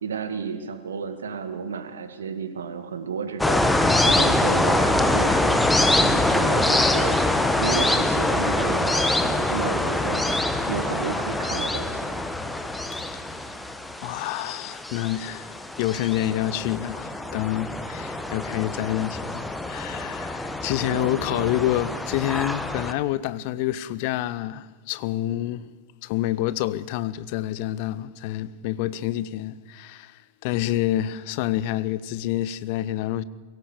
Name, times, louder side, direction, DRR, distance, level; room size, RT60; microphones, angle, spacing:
voice 1, 0.0-3.6 4.0-7.2 7.6-12.1 20.9-21.5, right 6 dB, 65° right, 2.0 m, -32 dB
sound 1, 3.4-22.9, left 2 dB, 5° left, 1.4 m, -24 dB
voice 2, 13.3-13.6 14.0-25.7 26.0-33.2, left 14 dB, 45° left, 0.7 m, -28 dB
23.0 x 17.0 x 6.7 m
figure-of-eight pair, 90°, 0 cm